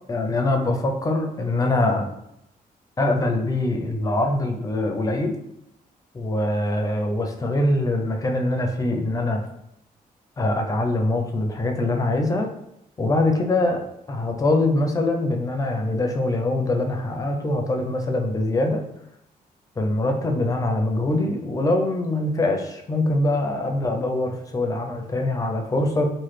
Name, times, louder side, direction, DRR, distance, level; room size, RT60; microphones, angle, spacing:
voice 1, 0.1-2.1 3.0-5.3 6.1-9.5 10.4-12.5 13.0-13.8 14.1-18.8 19.8-26.1, left 2 dB, 20° left, 3 dB, 0.5 m, -23 dB
3.1 x 2.1 x 3.2 m, 0.80 s
cardioid pair, 100°, 16 cm